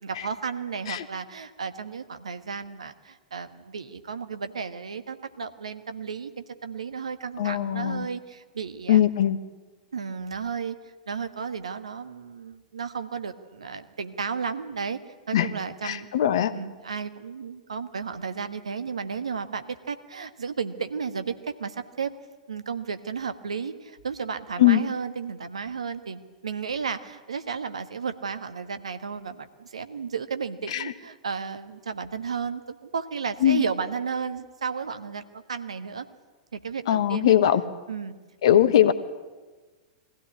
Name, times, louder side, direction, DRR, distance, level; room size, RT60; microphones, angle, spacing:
voice 1, 0.0-9.0 9.9-10.7 11.1-15.0 15.3-16.1 16.5-22.1 22.5-36.0 36.5-37.4 37.9-38.1 38.5-38.8, right 6 dB, 75° right, 10 dB, 1.4 m, -33 dB
voice 2, 7.4-8.1 8.9-9.4 15.3-15.5 15.8-16.5 24.6-24.8 30.7-30.8 33.4-33.6 36.9-37.6 38.4-38.9, left 11 dB, 60° left, 12 dB, 1.3 m, -20 dB
22.5 x 16.0 x 9.8 m, 1.3 s
figure-of-eight pair, 100°, 3 cm